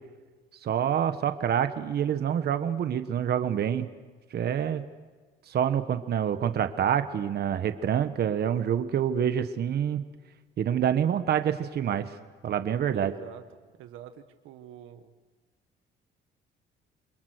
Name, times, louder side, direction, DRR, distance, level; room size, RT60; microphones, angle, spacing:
voice 1, 0.6-3.9 4.3-4.8 5.5-10.0 10.6-12.1 12.4-13.1, right 9 dB, 55° right, 9 dB, 1.3 m, -27 dB
voice 2, 12.9-13.4 13.8-15.0, right 10 dB, 85° right, 8 dB, 1.5 m, -46 dB
28.5 x 22.0 x 6.5 m, 1.4 s
cardioid pair, 105°, 20 cm